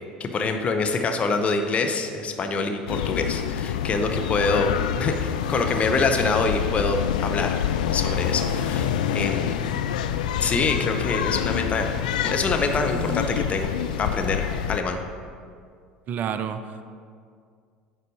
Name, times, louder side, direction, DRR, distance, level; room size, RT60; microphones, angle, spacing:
voice 1, 0.2-9.6 10.4-11.9 12.2-13.7 14.0-15.0, left 3 dB, 30° left, 5 dB, 0.7 m, -25 dB
sound 1, 2.9-14.8, left 10 dB, 70° left, 0.4 m, -27 dB
sound 2, 7.5-13.3, left 3 dB, 50° left, 2.2 m, -37 dB
voice 2, 16.1-16.8, right 7 dB, 40° right, 10 dB, 0.5 m, -29 dB
9.6 x 4.1 x 5.4 m, 2.2 s
figure-of-eight pair, 70°, 4 cm